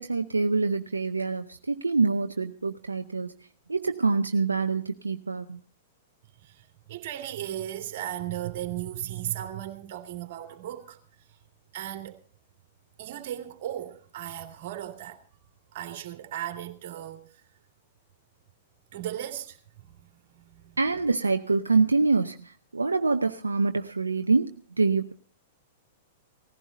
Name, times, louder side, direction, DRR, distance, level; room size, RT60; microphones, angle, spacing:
voice 1, 0.0-3.3 3.7-5.6 20.8-25.1, right 4 dB, 85° right, 0.7 m, -25 dB
voice 2, 6.4-11.0 11.7-12.2 13.0-15.2 15.7-17.3 18.9-19.6 19.9-20.1 20.3-20.8, right 12 dB, 55° right, 2.6 m, -36 dB
18.5 x 15.5 x 4.1 m
figure-of-eight pair, 105°, 0 cm